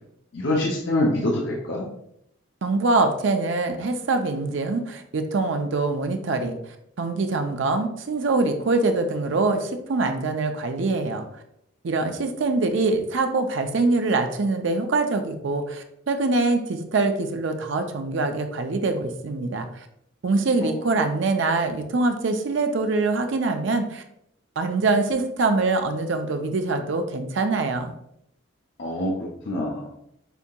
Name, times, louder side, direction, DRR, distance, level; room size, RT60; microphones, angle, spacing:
voice 1, 0.3-1.8 20.6-20.8 28.8-29.9, left 1 dB, 60° left, -2 dB, 0.6 m, -25 dB
voice 2, 2.6-6.6 7.0-11.2 11.8-19.9 20.2-24.0 24.6-27.9, right 3 dB, 65° right, 6 dB, 0.5 m, -24 dB
6.8 x 2.8 x 2.2 m, 0.75 s
head